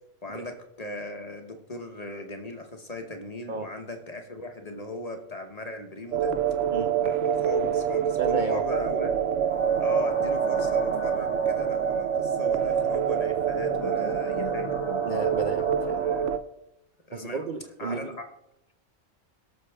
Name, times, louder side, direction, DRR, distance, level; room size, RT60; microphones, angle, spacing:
voice 1, 0.2-6.4 7.0-9.2 9.8-14.7 16.0-16.4 17.1-17.4 17.8-18.2, left 2 dB, 35° left, 5 dB, 1.0 m, -38 dB
sound 1, 6.1-16.4, right 8 dB, 75° right, 0.9 m, -26 dB
voice 2, 6.7-7.0 8.2-8.9 15.0-16.1 17.1-18.2, right 4 dB, 50° right, 5 dB, 0.6 m, -33 dB
sound 2, 9.5-16.3, left 4 dB, 50° left, 0.3 m, -39 dB
18.0 x 6.6 x 3.4 m, 0.82 s
omnidirectional pair, 1.3 m